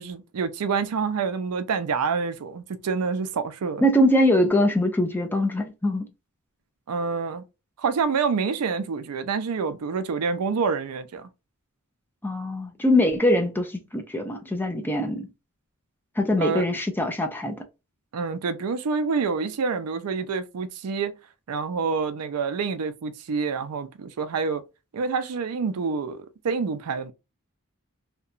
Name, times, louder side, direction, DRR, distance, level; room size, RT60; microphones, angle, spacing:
voice 1, 0.0-3.8 6.9-7.4 7.8-11.3 16.4-16.6 18.1-21.1 21.5-24.6 24.9-27.1, right 5 dB, 80° right, 0.4 m, -27 dB
voice 2, 3.8-6.0 12.2-15.3 16.2-17.6, left 1 dB, 10° left, 0.4 m, -22 dB
2.8 x 2.2 x 2.4 m
head